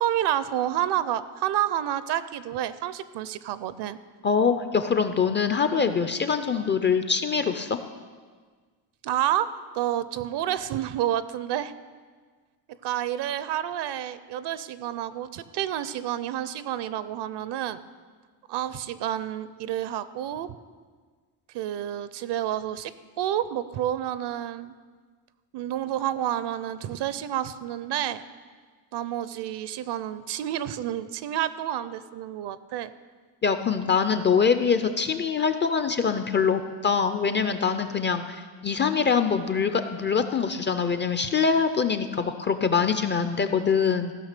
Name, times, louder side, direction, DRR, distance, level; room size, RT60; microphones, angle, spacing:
voice 1, 0.0-4.0 9.0-9.5 9.7-11.7 12.8-17.8 18.5-20.6 21.5-22.9 23.2-24.7 25.5-28.2 28.9-32.9, right 11 dB, 60° right, 15 dB, 0.6 m, -29 dB
voice 2, 4.2-7.8 33.4-44.1, left 6 dB, 25° left, 9 dB, 0.4 m, -24 dB
15.5 x 5.7 x 6.6 m, 1.5 s
cardioid pair, 125°, 47 cm